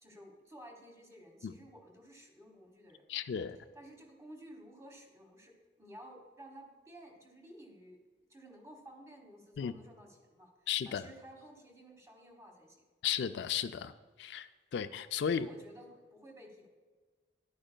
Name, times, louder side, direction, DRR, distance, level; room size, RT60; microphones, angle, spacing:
voice 1, 0.0-3.2 3.7-5.5 5.8-8.0 8.3-12.8 15.2-16.7, right 1 dB, 15° right, 2 dB, 1.2 m, -54 dB
voice 2, 3.1-3.6 9.6-9.7 10.7-11.0 13.0-13.9 14.2-15.5, left 8 dB, 70° left, 11 dB, 0.3 m, -34 dB
11.5 x 8.7 x 2.2 m, 1.4 s
head